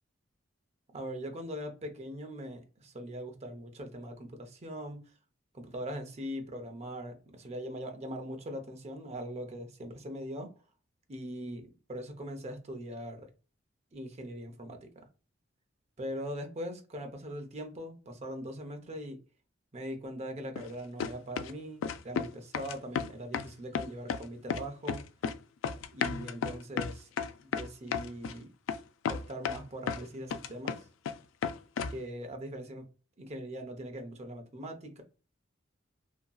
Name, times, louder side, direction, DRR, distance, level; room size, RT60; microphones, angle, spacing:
voice 1, 0.9-5.0 5.5-10.5 11.1-13.3 13.9-14.9 16.0-19.2 19.7-25.0 25.9-27.1 27.4-28.5 29.1-30.8 31.9-32.9 33.2-35.0, equal, 35° right, 0.6 m, -41 dB
sound 1, 20.6-20.7 21.0-21.5 21.8-22.3 22.5-23.5 23.7-24.2 24.5-25.4 25.6-28.3 28.7-28.8 29.1-30.0 30.3-31.2 31.4-32.0, left 6 dB, 85° left, 0.3 m, -33 dB
2.8 x 2.6 x 2.3 m
head